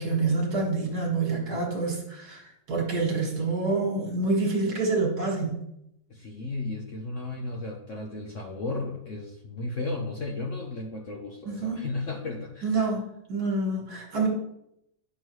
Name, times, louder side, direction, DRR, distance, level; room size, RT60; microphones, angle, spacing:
voice 1, 0.0-5.6 11.5-11.9 12.6-14.3, right 3 dB, 55° right, 0 dB, 2.1 m, -27 dB
voice 2, 6.1-12.9, left 2 dB, 50° left, 0 dB, 1.0 m, -34 dB
9.5 x 6.4 x 3.1 m, 0.80 s
omnidirectional pair, 2.0 m